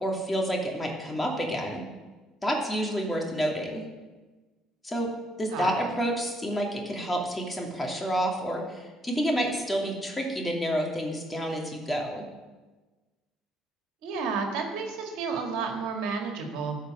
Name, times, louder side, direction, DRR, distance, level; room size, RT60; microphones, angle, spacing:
voice 1, 0.0-1.8 2.4-3.8 4.8-5.1 5.4-12.2, equal, 15° left, 0 dB, 2.7 m, -29 dB
voice 2, 14.0-16.8, right 5 dB, 70° right, 3 dB, 1.9 m, -31 dB
13.0 x 5.1 x 7.8 m, 1.2 s
hypercardioid pair, 70°, 0 cm